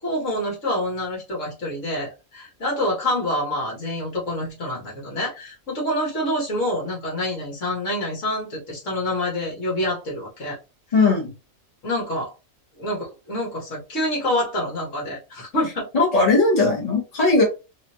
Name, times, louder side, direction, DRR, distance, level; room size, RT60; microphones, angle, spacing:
voice 1, 0.0-10.6 11.8-12.3 12.8-15.9, left 1 dB, 65° left, -3 dB, 2.0 m, -27 dB
voice 2, 10.9-11.3 15.9-17.4, left 3 dB, 30° left, -2 dB, 1.4 m, -18 dB
4.1 x 2.7 x 2.8 m, 0.29 s
omnidirectional pair, 1.4 m